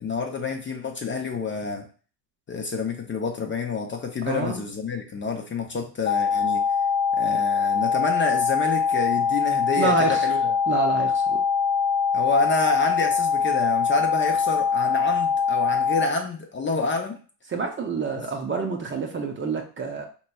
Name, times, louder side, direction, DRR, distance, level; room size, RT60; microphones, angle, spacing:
voice 1, 0.0-1.9 2.5-6.6 7.1-10.5 12.1-17.1, left 4 dB, 25° left, 3 dB, 0.6 m, -28 dB
voice 2, 4.3-4.6 9.8-10.3 10.7-11.4 17.5-20.1, right 4 dB, 25° right, 3 dB, 0.6 m, -27 dB
sound 1, 6.1-16.1, left 6 dB, 90° left, 0.7 m, -23 dB
4.1 x 3.0 x 2.3 m, 0.39 s
supercardioid pair, 80°, 49 cm